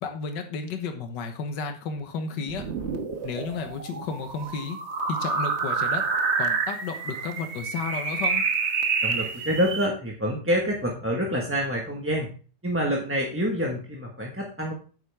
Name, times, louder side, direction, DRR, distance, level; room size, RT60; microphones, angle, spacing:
voice 1, 0.0-2.7 3.2-4.8 5.1-6.0 6.4-8.4, left 5 dB, 80° left, 6 dB, 1.8 m, -32 dB
sound 1, 2.5-9.9, right 5 dB, 45° right, 1.3 m, -28 dB
voice 2, 9.0-12.3 12.6-14.7, equal, 10° right, -1 dB, 1.2 m, -27 dB
9.1 x 8.9 x 3.5 m, 0.38 s
omnidirectional pair, 1.9 m